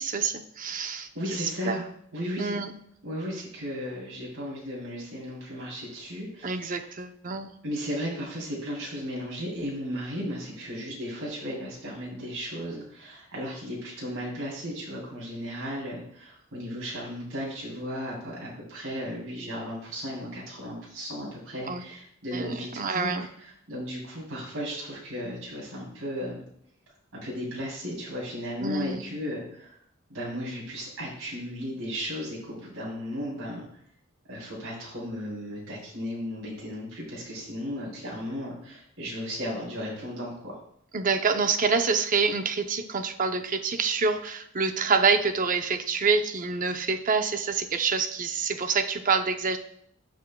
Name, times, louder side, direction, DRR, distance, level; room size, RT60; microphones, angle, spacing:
voice 1, 0.0-1.8 2.4-2.7 6.4-7.5 21.7-21.8 22.3-23.3 28.6-29.0 40.9-49.6, right 5 dB, 40° right, 8 dB, 0.6 m, -27 dB
voice 2, 1.1-1.8 2.1-2.6 3.0-6.7 7.6-23.1 23.4-26.4 27.1-29.8 30.1-33.7 34.3-40.6, equal, 70° right, -5 dB, 3.4 m, -35 dB
14.0 x 6.1 x 2.2 m, 0.69 s
head